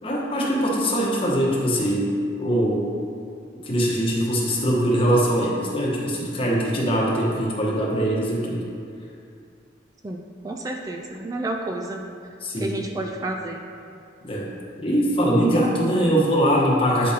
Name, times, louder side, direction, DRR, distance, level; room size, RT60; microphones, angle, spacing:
voice 1, 0.0-2.1 2.4-2.9 3.6-8.6 12.4-12.8 14.2-14.5 14.8-17.1, equal, 30° left, -4 dB, 1.1 m, -22 dB
voice 2, 10.0-12.0 12.6-13.6, right 2 dB, 20° right, 2 dB, 0.3 m, -30 dB
9.2 x 4.9 x 2.8 m, 2.4 s
head